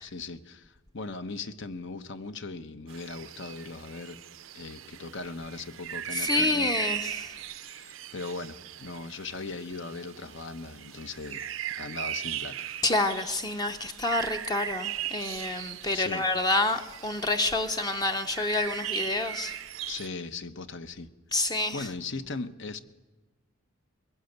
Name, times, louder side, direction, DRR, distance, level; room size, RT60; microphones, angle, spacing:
voice 1, 0.0-4.2 4.5-6.9 7.4-12.7 15.9-16.2 19.9-21.1 21.4-22.8, left 3 dB, 65° left, 1.0 m, -39 dB
sound 1, 2.9-20.1, right 11 dB, 70° right, 0.6 m, -39 dB
voice 2, 6.1-7.3 12.8-19.5 21.3-21.9, left 2 dB, 20° left, 0.7 m, -28 dB
22.5 x 17.0 x 8.1 m
head